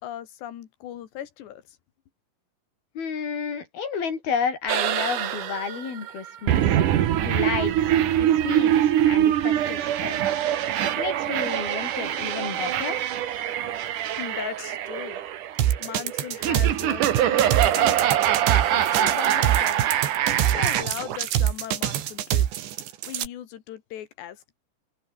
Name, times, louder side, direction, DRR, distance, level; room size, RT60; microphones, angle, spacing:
voice 1, 0.0-1.8 14.1-15.2 15.8-18.0 18.7-20.0 20.4-22.5 23.1-24.5, left 11 dB, 75° left, 4.1 m, -38 dB
voice 2, 2.9-6.8 7.2-10.2 11.0-13.0, left 6 dB, 60° left, 6.7 m, -31 dB
sound 1, 4.7-20.8, right 11 dB, 60° right, 2.5 m, -24 dB
sound 2, 15.6-23.3, right 11 dB, 85° right, 4.4 m, -25 dB
omnidirectional pair, 5.1 m